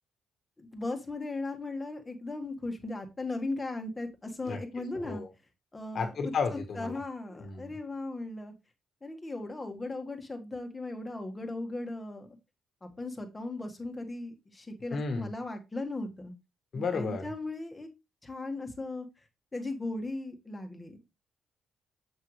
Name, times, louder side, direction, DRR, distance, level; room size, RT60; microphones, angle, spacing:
voice 1, 0.6-5.2 5.7-6.1 6.7-8.5 9.0-12.4 12.8-16.3 16.7-17.9 18.2-19.1 19.5-21.0, left 2 dB, 20° left, 5 dB, 1.6 m, -37 dB
voice 2, 4.9-5.3 5.9-7.0 7.4-7.7 14.9-15.3 16.7-17.3, left 4 dB, 50° left, 5 dB, 1.4 m, -33 dB
7.6 x 5.7 x 3.2 m, 0.25 s
cardioid pair, 90°, 0 cm